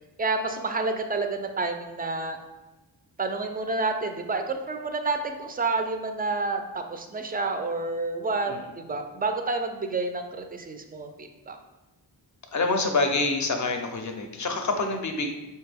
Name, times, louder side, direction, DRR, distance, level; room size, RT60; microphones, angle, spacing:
voice 1, 0.2-2.4 3.2-11.6, right 3 dB, 25° right, 6 dB, 0.3 m, -29 dB
voice 2, 12.5-15.3, left 3 dB, 40° left, 5 dB, 0.5 m, -26 dB
4.2 x 2.2 x 3.3 m, 1.1 s
wide cardioid pair, 60°, 45 cm